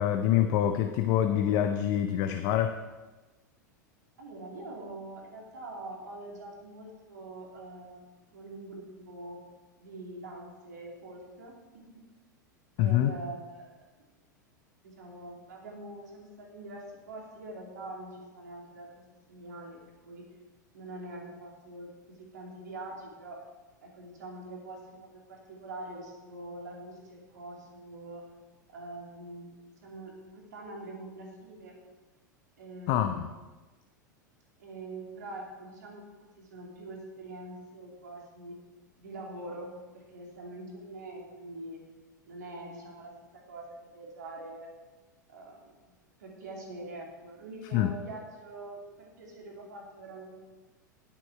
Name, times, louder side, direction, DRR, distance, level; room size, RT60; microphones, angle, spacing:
voice 1, 0.0-2.8 12.8-13.2 32.9-33.3 47.7-48.0, left 11 dB, 45° left, 8 dB, 0.6 m, -26 dB
voice 2, 4.2-9.4 9.8-12.0 12.8-13.7 14.8-19.0 19.3-19.8 20.0-20.2 20.7-23.4 23.8-28.2 28.7-31.7 32.6-33.3 34.6-38.6 39.0-41.8 42.3-44.7 45.3-45.9 46.2-50.3, right 2 dB, 65° right, -1 dB, 2.6 m, -44 dB
10.5 x 8.7 x 4.7 m, 1.2 s
figure-of-eight pair, 90°, 10 cm